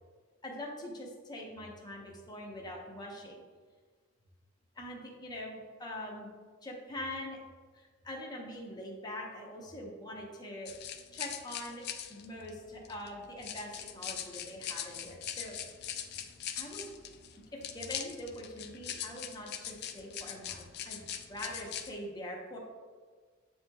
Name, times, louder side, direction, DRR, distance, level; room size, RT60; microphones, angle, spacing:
voice 1, 0.4-3.4 4.8-6.3 6.6-7.4 7.7-10.7 11.1-11.8 12.1-15.6 15.9-16.0 16.6-16.9 17.5-21.0 21.3-22.6, left 1 dB, 20° left, -1 dB, 0.7 m, -43 dB
sound 1, 10.7-21.9, left 9 dB, 55° left, 0.3 m, -42 dB
7.8 x 2.9 x 2.2 m, 1.5 s
head